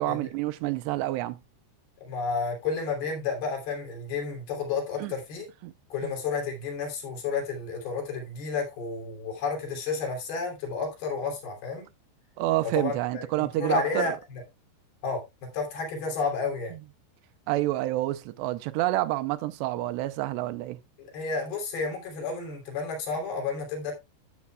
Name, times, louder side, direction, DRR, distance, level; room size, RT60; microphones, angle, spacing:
voice 1, 0.0-1.4 5.0-5.1 5.6-5.7 6.0-6.1 12.4-14.1 17.5-20.8, right 16 dB, 85° right, 2.8 m, -28 dB
voice 2, 2.0-5.5 5.9-11.9 12.8-14.4 15.0-15.2 15.5-16.7 21.0-23.9, left 4 dB, 65° left, 4.7 m, -31 dB
12.5 x 8.5 x 2.3 m
omnidirectional pair, 4.9 m